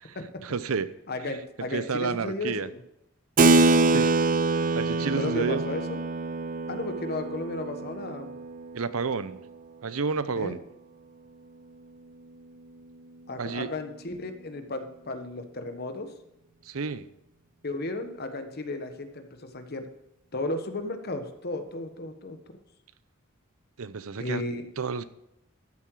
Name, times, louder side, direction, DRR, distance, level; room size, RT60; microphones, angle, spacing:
voice 1, 0.0-0.9 1.2-1.4 1.7-2.7 3.9-4.2 4.7-5.6 8.7-9.4 9.8-10.6 13.4-13.7 16.6-17.1 23.8-24.4 24.8-25.0, right 5 dB, 85° right, 15 dB, 0.7 m, -30 dB
voice 2, 1.1-2.8 5.0-6.0 6.7-8.3 10.4-10.6 13.3-16.1 17.6-19.3 19.5-19.9 20.3-22.4 24.2-24.7, left 2 dB, 50° left, 8 dB, 1.2 m, -34 dB
Keyboard (musical), 3.4-9.4, right 3 dB, 40° right, 0.5 m, -25 dB
13.5 x 7.6 x 4.8 m, 0.84 s
head